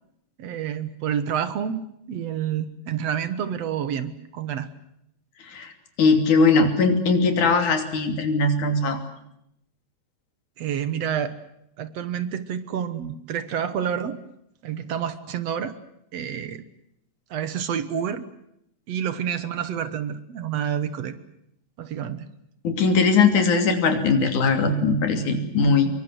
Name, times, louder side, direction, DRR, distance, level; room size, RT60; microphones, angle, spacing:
voice 1, 0.4-4.7 10.6-11.4 11.8-14.2 14.6-15.7 16.1-16.6 17.3-18.3 18.9-21.1 21.8-22.3, right 8 dB, 60° right, 12 dB, 2.3 m, -28 dB
voice 2, 6.0-9.0 22.6-25.9, left 4 dB, 80° left, 6 dB, 4.4 m, -20 dB
25.5 x 23.0 x 8.0 m, 0.78 s
omnidirectional pair, 3.4 m